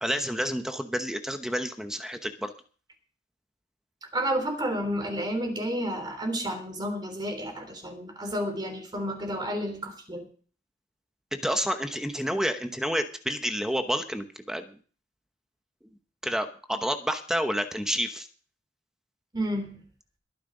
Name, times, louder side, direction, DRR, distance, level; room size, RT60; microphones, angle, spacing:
voice 1, 0.0-2.5 11.4-14.7 16.2-18.3, equal, 5° right, 7 dB, 0.9 m, -29 dB
voice 2, 4.1-10.2 19.3-19.8, equal, 25° right, 5 dB, 3.4 m, -31 dB
21.5 x 10.0 x 3.9 m, 0.42 s
head